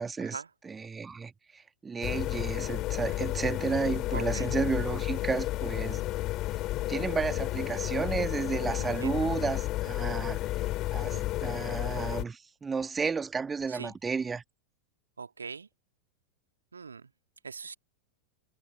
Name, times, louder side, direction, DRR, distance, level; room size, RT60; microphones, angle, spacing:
voice 1, 0.0-6.0 6.9-10.4 10.9-14.4, right 5 dB, 15° right, 1.8 m, -32 dB
sound 1, 2.0-12.2, left 16 dB, 35° left, 2.6 m, -32 dB
voice 2, 4.1-4.5 8.8-9.3 11.1-11.3 13.7-13.9 15.2-15.7 16.7-17.0 17.4-17.7, right 5 dB, 75° right, 2.1 m, -41 dB
figure-of-eight pair, 90°, 0 cm